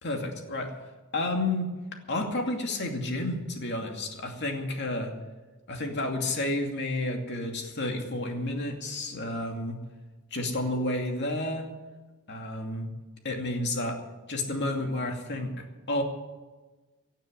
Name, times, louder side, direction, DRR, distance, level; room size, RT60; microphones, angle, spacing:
voice 1, 0.0-0.7 1.1-1.7 2.1-5.1 5.7-9.8 10.3-11.7 12.3-12.9 13.2-14.0 14.3-16.0, left 2 dB, 55° left, 3 dB, 2.5 m, -31 dB
17.0 x 7.4 x 9.7 m, 1.2 s
head